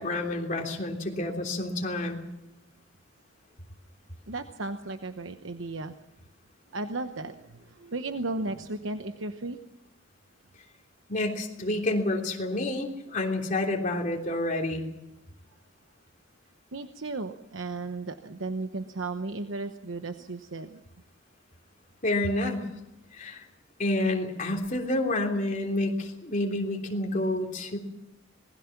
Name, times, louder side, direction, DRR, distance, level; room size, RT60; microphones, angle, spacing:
voice 1, 0.0-2.2 11.1-14.9 22.0-22.7 23.1-23.5 23.8-27.8, left 1 dB, 40° left, 1 dB, 3.3 m, -29 dB
voice 2, 4.3-5.9 6.7-9.6 16.7-20.8, right 2 dB, 75° right, 7 dB, 1.0 m, -35 dB
26.5 x 20.0 x 5.9 m, 0.90 s
head